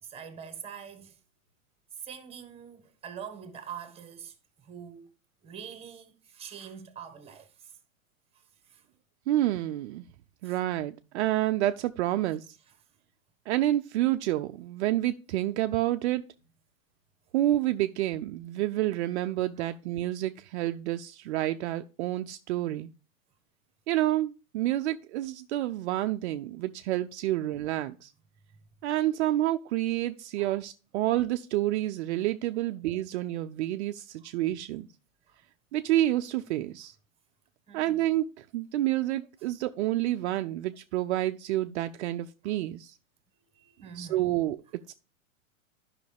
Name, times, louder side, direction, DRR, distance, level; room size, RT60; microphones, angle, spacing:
voice 1, 0.0-1.2 1.9-5.1 5.4-7.8 8.3-8.8 10.4-10.6 19.6-19.7 30.4-30.6 35.3-35.4 37.7-38.0 42.4-42.6 43.5-44.3, right 8 dB, 15° right, 1.4 m, -45 dB
voice 2, 9.3-10.0 10.4-12.6 13.5-16.2 17.3-22.9 23.9-28.1 28.8-34.9 35.7-36.9 37.7-43.0 43.9-44.9, right 14 dB, 55° right, 0.5 m, -29 dB
10.5 x 5.8 x 3.4 m
hypercardioid pair, 120°, 41 cm